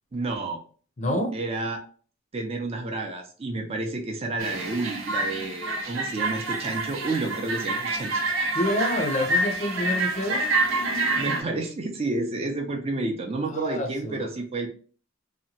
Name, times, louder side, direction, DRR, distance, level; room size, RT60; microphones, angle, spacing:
voice 1, 0.1-0.6 1.3-1.8 2.3-8.3 11.2-14.7, right 2 dB, 30° right, 2 dB, 0.5 m, -30 dB
voice 2, 1.0-1.4 8.5-10.5 13.5-14.2, left 1 dB, 35° left, 5 dB, 0.5 m, -27 dB
sound 1, 4.4-11.4, right 2 dB, 80° right, 0.6 m, -27 dB
2.8 x 2.1 x 2.8 m, 0.40 s
head